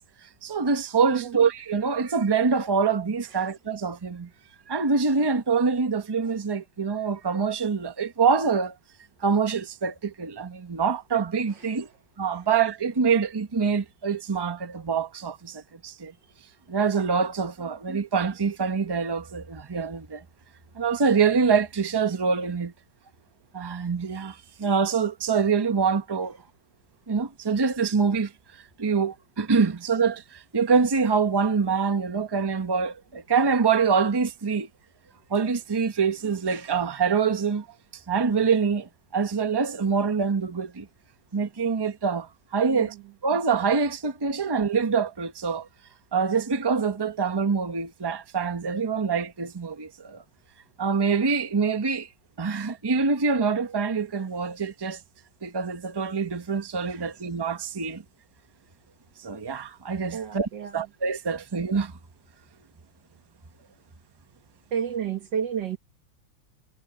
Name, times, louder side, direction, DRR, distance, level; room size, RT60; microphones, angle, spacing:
voice 1, 0.2-4.3 4.7-8.7 9.2-11.9 12.2-16.1 16.7-20.2 20.7-22.7 23.5-26.4 27.1-34.7 35.3-37.7 37.9-40.9 41.3-42.9 43.2-45.7 46.1-50.2 50.8-52.1 52.4-55.0 55.4-58.0 59.2-61.9, right 5 dB, 25° right, 0.5 m, -25 dB
voice 2, 1.1-1.4 11.5-11.7 42.6-43.0 56.9-57.1 60.1-60.8 64.7-65.8, right 8 dB, 55° right, 2.1 m, -31 dB
omnidirectional pair, 2.4 m